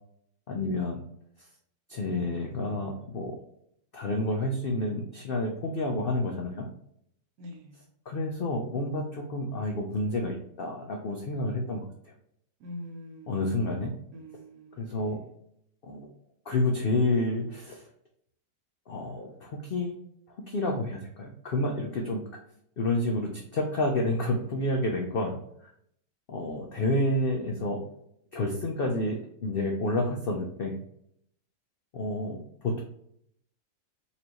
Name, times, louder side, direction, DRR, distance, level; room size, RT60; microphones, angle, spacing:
voice 1, 0.5-1.0 1.9-3.4 3.9-6.6 8.1-12.1 13.3-13.9 14.8-15.2 15.8-16.0 16.5-17.9 18.9-19.9 20.3-22.2 22.8-25.7 26.3-27.8 28.3-30.7 31.9-32.8, left 2 dB, 70° left, 0 dB, 0.5 m, -29 dB
voice 2, 7.4-7.8 12.6-13.8 14.1-15.2, left 1 dB, 75° right, 4 dB, 1.2 m, -45 dB
4.2 x 2.6 x 2.9 m, 0.71 s
omnidirectional pair, 1.6 m